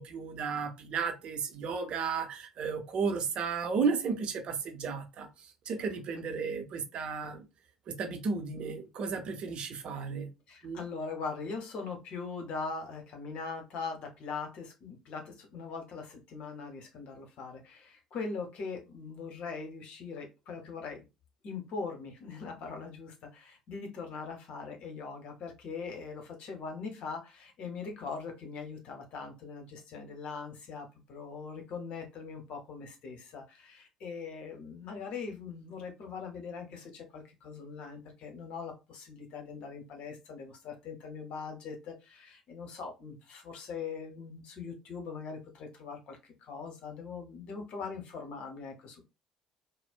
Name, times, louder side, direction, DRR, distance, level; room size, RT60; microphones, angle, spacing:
voice 1, 0.0-7.5 7.9-10.3 10.6-10.8, right 5 dB, 45° right, 0.6 m, -34 dB
voice 2, 10.5-21.1 21.4-49.1, left 4 dB, 50° left, 0.9 m, -41 dB
4.1 x 2.1 x 2.4 m
figure-of-eight pair, 50°, 2 cm